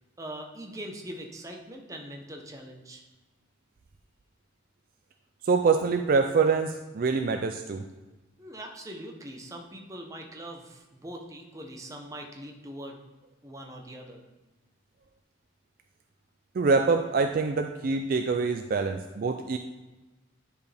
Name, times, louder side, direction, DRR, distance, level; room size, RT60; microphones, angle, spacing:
voice 1, 0.2-3.0 8.4-13.0 13.4-14.2, right 1 dB, 15° right, 2 dB, 0.8 m, -42 dB
voice 2, 5.4-7.9 16.5-19.6, right 4 dB, 45° right, 5 dB, 0.4 m, -25 dB
10.5 x 4.6 x 3.4 m, 1.1 s
head